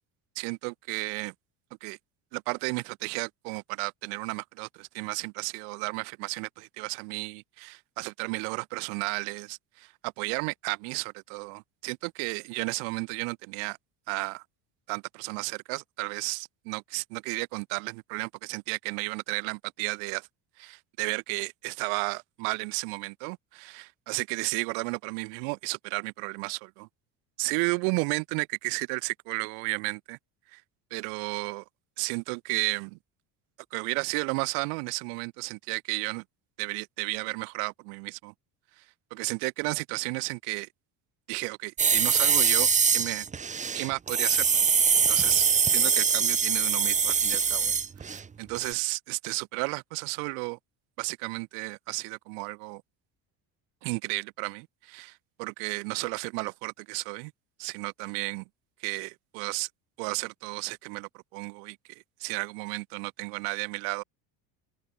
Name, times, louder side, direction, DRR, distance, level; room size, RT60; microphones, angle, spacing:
voice 1, 0.3-1.3 1.8-2.0 2.3-13.8 14.1-14.4 14.9-20.3 20.6-26.9 27.4-30.2 30.5-30.6 30.9-31.6 32.0-33.0 33.7-36.2 36.6-38.3 38.8-38.9 39.1-40.7 41.3-43.3 43.7-44.7 45.1-50.6 51.0-52.8 53.8-57.3 57.6-58.4 58.8-59.7 60.0-64.0, right 40 dB or more, 85° right, 3.0 m, -33 dB
sound 1, 41.8-48.3 48.5-48.7, right 6 dB, 15° right, 0.6 m, -23 dB
open air
supercardioid pair, 105°, 45 cm